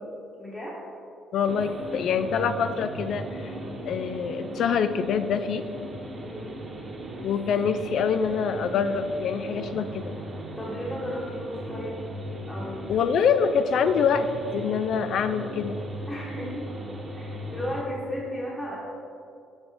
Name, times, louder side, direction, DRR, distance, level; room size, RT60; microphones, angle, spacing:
voice 1, 0.4-0.8 6.2-6.6 10.6-12.1 12.5-13.0 16.1-16.7 17.1-18.7, equal, 20° left, -7 dB, 1.2 m, -35 dB
voice 2, 1.3-3.5 3.8-5.6 7.2-10.1 12.9-14.3 14.5-15.8, left 6 dB, 65° left, 11 dB, 0.4 m, -25 dB
sound 1, 1.5-17.8, right 1 dB, 30° right, 1.1 m, -37 dB
7.1 x 5.3 x 3.4 m, 2.6 s
cardioid pair, 85°, 0 cm